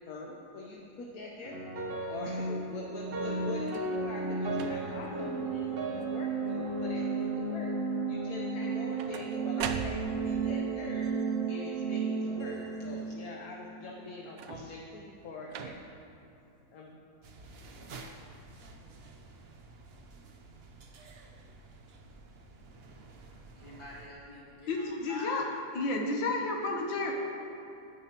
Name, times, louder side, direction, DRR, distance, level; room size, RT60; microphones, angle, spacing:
voice 1, 0.1-1.6 2.1-7.7 8.1-11.1 11.5-15.8 16.7-17.0, left 3 dB, 60° left, -1 dB, 1.2 m, -43 dB
sound 1, 1.4-13.7, right 4 dB, 35° right, 1.1 m, -33 dB
sound 2, 3.5-4.0 4.5-5.1 5.7-6.0 6.3-6.9 8.6-10.4 14.2-14.9 15.5-16.1 16.9-17.0, right 6 dB, 80° right, 1.3 m, -41 dB
sound 3, 17.2-24.1, right 3 dB, 60° right, 0.6 m, -51 dB
voice 2, 23.5-25.4 27.0-27.1, left 2 dB, 20° left, -8 dB, 2.8 m, -45 dB
voice 3, 24.7-25.4 25.7-27.1, left 3 dB, 90° left, 1 dB, 1.7 m, -31 dB
15.0 x 10.0 x 3.0 m, 2.9 s
omnidirectional pair, 2.0 m